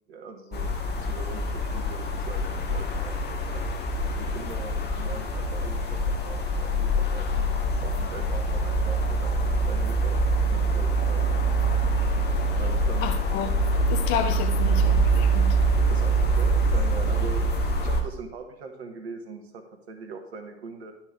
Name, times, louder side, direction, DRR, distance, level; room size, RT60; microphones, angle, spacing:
voice 1, 0.1-3.6 4.2-7.5 7.8-9.4 9.7-11.3 12.6-13.2 15.9-20.9, right 4 dB, 70° right, 1.3 m, -41 dB
sound 1, 0.5-18.0, right 2 dB, 30° left, 1.4 m, -24 dB
voice 2, 13.0-13.5 13.9-15.6, left 8 dB, 55° left, 1.0 m, -31 dB
11.0 x 4.5 x 4.7 m
figure-of-eight pair, 70°, 33 cm